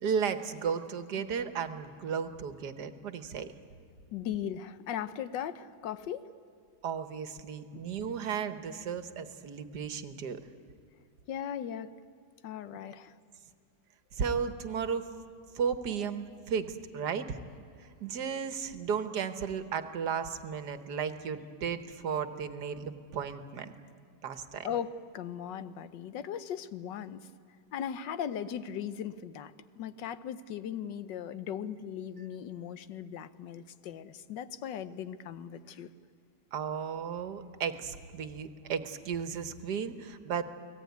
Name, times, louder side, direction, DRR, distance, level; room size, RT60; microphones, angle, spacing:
voice 1, 0.0-3.5 6.8-10.4 14.1-15.1 15.5-17.4 17.8-23.7 24.2-24.7 36.5-40.4, right 6 dB, 70° right, 10 dB, 1.7 m, -34 dB
voice 2, 4.1-6.3 7.7-7.9 11.3-11.9 12.4-13.1 24.6-27.3 27.7-35.9, left 9 dB, 90° left, 13 dB, 1.5 m, -38 dB
29.5 x 19.0 x 9.4 m, 2.2 s
omnidirectional pair, 1.9 m